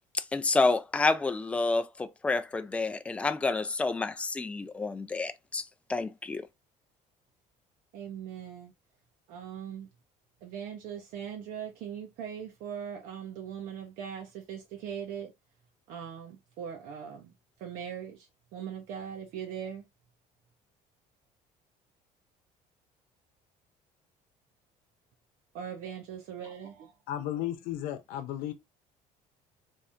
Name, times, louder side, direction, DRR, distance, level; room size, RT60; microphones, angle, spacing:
voice 1, 0.1-5.6 5.9-6.5, left 3 dB, 10° left, 0.3 m, -29 dB
voice 2, 7.9-8.7 9.3-9.9 10.4-15.3 15.9-17.3 17.6-19.8 25.5-26.9, right 8 dB, 75° right, 1.0 m, -40 dB
voice 3, 27.1-28.5, left 12 dB, 80° left, 0.8 m, -34 dB
3.5 x 2.7 x 3.5 m
cardioid pair, 165°, 14 cm